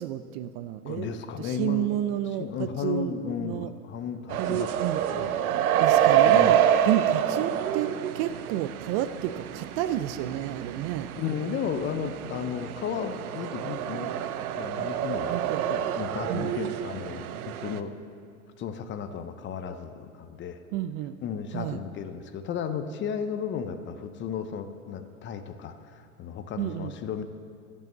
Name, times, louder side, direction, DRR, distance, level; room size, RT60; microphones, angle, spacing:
voice 1, 0.0-3.7 4.4-5.0 5.8-11.1 15.3-15.6 16.3-16.5 20.7-21.2 21.5-21.8 26.6-26.9, right 12 dB, 45° right, 12 dB, 0.4 m, -31 dB
voice 2, 0.9-1.9 2.4-5.3 6.2-6.6 11.2-14.1 14.6-15.4 15.7-17.9 18.6-20.6 21.2-27.2, left 7 dB, 25° left, 9 dB, 0.6 m, -34 dB
sound 1, 4.3-17.8, right 10 dB, 85° right, 0.7 m, -27 dB
12.0 x 5.5 x 7.2 m, 2.3 s
hypercardioid pair, 115°, 42 cm